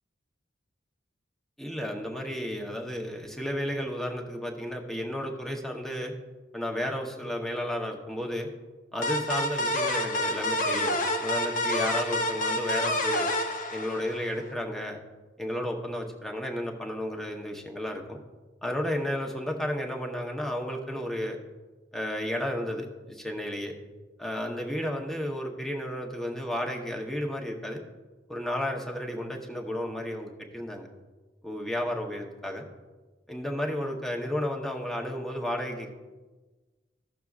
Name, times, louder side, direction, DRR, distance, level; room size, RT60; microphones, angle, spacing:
voice 1, 1.6-6.1 6.5-8.5 8.9-13.3 13.7-15.0 15.4-18.2 18.6-21.4 21.9-23.7 24.2-27.8 28.3-30.9 31.4-32.6 33.3-35.9, equal, ahead, 0 dB, 0.9 m, -32 dB
sound 1, 9.0-14.4, left 1 dB, 45° left, 0.8 m, -28 dB
15.5 x 6.6 x 2.4 m, 1.3 s
head